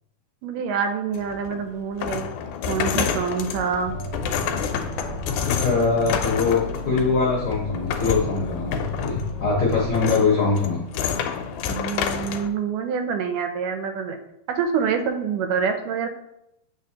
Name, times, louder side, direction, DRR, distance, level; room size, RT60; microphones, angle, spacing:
voice 1, 0.4-2.4 2.7-3.9 11.7-14.2 14.5-16.1, right 6 dB, 80° right, 6 dB, 2.1 m, -26 dB
sound 1, 1.1-12.5, left 7 dB, 80° left, 1.9 m, -29 dB
sound 2, 3.8-9.9, left 2 dB, 55° right, 1.7 m, -35 dB
voice 2, 5.5-10.8, left 4 dB, 65° left, -5 dB, 1.3 m, -22 dB
8.5 x 3.9 x 2.8 m, 0.81 s
omnidirectional pair, 3.9 m